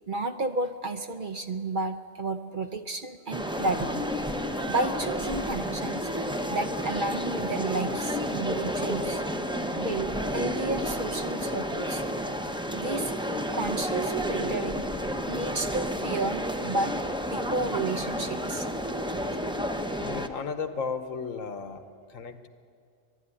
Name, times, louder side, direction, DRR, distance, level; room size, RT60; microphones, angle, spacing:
voice 1, 0.1-4.0 4.7-6.1 6.5-9.2 9.7-12.0 12.7-13.1 13.5-14.8 15.3-17.0 17.3-18.7, right 2 dB, 45° right, 8 dB, 0.8 m, -31 dB
sound 1, 3.3-20.3, equal, 5° right, 0.6 m, -31 dB
voice 2, 20.0-22.5, left 5 dB, 85° left, 9 dB, 1.4 m, -35 dB
22.5 x 11.5 x 9.8 m, 2.4 s
omnidirectional pair, 1.4 m